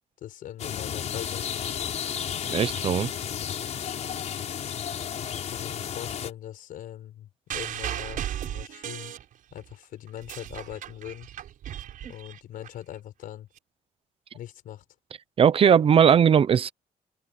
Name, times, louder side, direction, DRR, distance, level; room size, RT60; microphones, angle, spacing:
voice 1, 0.2-1.7 5.4-9.1 9.5-11.3 12.1-13.5 14.3-14.9, left 11 dB, 85° left, 5.6 m, -41 dB
sound 1, 0.6-6.3, left 8 dB, 55° left, 4.9 m, -32 dB
voice 2, 2.5-3.1 15.4-16.7, right 8 dB, 40° right, 0.8 m, -19 dB
sound 2, 7.5-9.7 10.1-12.7 13.6-13.7, right 11 dB, 75° right, 6.2 m, -36 dB
open air
cardioid pair, 155°, 14 cm